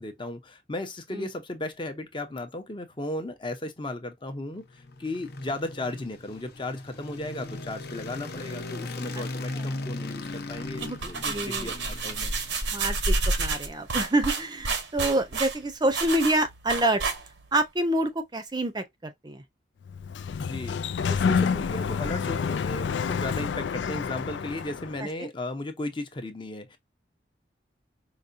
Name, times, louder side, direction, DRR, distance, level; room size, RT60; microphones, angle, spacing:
voice 1, 0.0-12.3 20.4-20.8 21.1-26.8, left 1 dB, 30° left, 0.7 m, -35 dB
sound 1, 4.6-13.0, left 2 dB, 60° left, 0.8 m, -38 dB
sound 2, 10.6-17.6, right 3 dB, 85° right, 0.9 m, -29 dB
voice 2, 11.3-11.7 12.2-12.3 12.7-17.0 17.5-19.4 25.0-25.1, right 1 dB, 25° right, 0.6 m, -27 dB
Sliding door, 19.9-25.0, left 6 dB, 85° left, 0.4 m, -28 dB
4.8 x 2.2 x 2.6 m
head